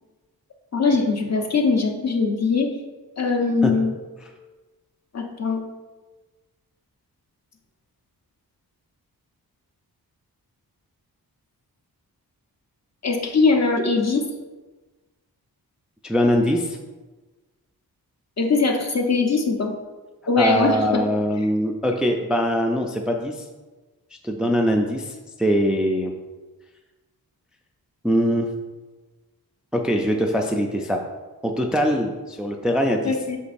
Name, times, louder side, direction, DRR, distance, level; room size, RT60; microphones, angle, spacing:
voice 1, 0.7-2.7 3.2-3.9 5.1-5.6 13.0-14.2 18.4-19.7 20.3-21.0 33.0-33.4, left 4 dB, 45° left, 2 dB, 0.9 m, -21 dB
voice 2, 16.0-16.8 20.4-23.4 24.2-26.1 28.0-28.5 29.7-31.0 31.4-33.2, equal, ahead, 2 dB, 0.4 m, -22 dB
8.3 x 6.4 x 2.6 m, 1.2 s
wide cardioid pair, 160°, 37 cm